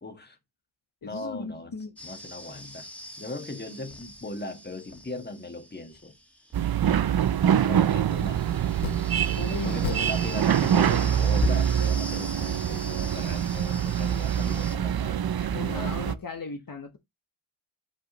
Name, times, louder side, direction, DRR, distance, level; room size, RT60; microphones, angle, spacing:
voice 1, 0.0-0.4 1.0-1.7 2.0-2.9 3.2-6.1 7.5-8.5 9.6-16.1, left 2 dB, 20° left, 1.5 m, -39 dB
voice 2, 1.0-1.9 9.4-10.0 15.5-17.0, left 5 dB, 45° left, 1.0 m, -37 dB
sound 1, 2.0-14.8, equal, 5° left, 1.7 m, -44 dB
sound 2, 6.5-16.1, right 9 dB, 50° right, 0.5 m, -25 dB
sound 3, 8.8-9.3 9.8-10.5 10.9-11.0 11.4-12.6, left 11 dB, 70° left, 0.6 m, -34 dB
7.7 x 4.9 x 2.9 m
wide cardioid pair, 95°, 48 cm